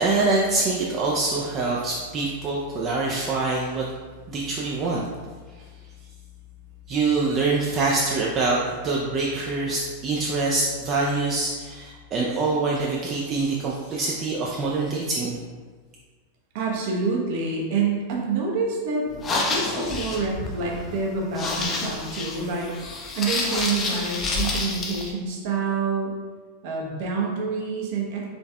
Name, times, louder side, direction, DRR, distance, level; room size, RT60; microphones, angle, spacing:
voice 1, 0.0-3.9 4.3-5.0 6.9-15.4, right 3 dB, 30° right, -3 dB, 0.4 m, -25 dB
voice 2, 16.5-19.1 19.3-22.7 23.1-26.1 26.6-28.2, right 4 dB, 50° right, -1 dB, 0.8 m, -27 dB
sound 1, 19.1-25.1, left 3 dB, 25° left, 0.5 m, -29 dB
3.9 x 3.4 x 2.2 m, 1.4 s
figure-of-eight pair, 90°, 0 cm